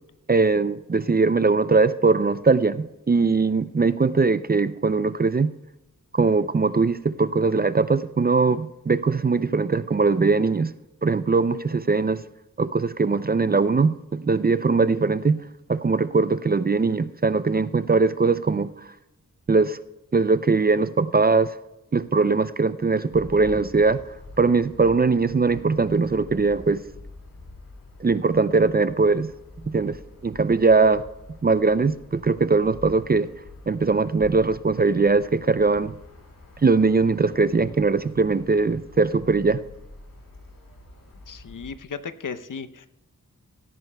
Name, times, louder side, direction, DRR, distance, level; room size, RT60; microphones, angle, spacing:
voice 1, 0.3-5.5 6.1-10.7 11.0-12.2 12.6-15.4 15.7-18.9 19.5-19.8 20.1-21.6 21.9-24.0 24.4-26.8 28.0-29.3 29.6-30.0 30.2-31.1 31.4-33.3 33.7-35.9 36.6-39.6, right 4 dB, 30° right, 15 dB, 0.4 m, -21 dB
sound 1, 23.1-41.7, left 2 dB, 90° left, 2.8 m, -46 dB
voice 2, 41.3-42.9, left 5 dB, 70° left, 12 dB, 0.7 m, -35 dB
17.0 x 13.5 x 2.2 m, 0.96 s
wide cardioid pair, 70°, 33 cm